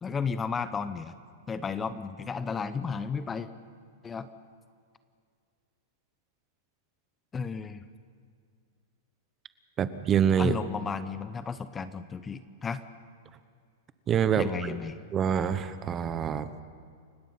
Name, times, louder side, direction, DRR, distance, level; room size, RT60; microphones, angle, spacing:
voice 1, 0.0-1.1 1.5-3.5 4.0-4.3 7.3-7.8 10.4-12.8 14.4-15.0, left 5 dB, 15° left, 12 dB, 0.9 m, -33 dB
voice 2, 9.8-10.6 14.1-14.8 15.1-16.5, right 8 dB, 25° right, 12 dB, 1.1 m, -26 dB
29.5 x 16.5 x 5.7 m, 2.2 s
hypercardioid pair, 135°, 0 cm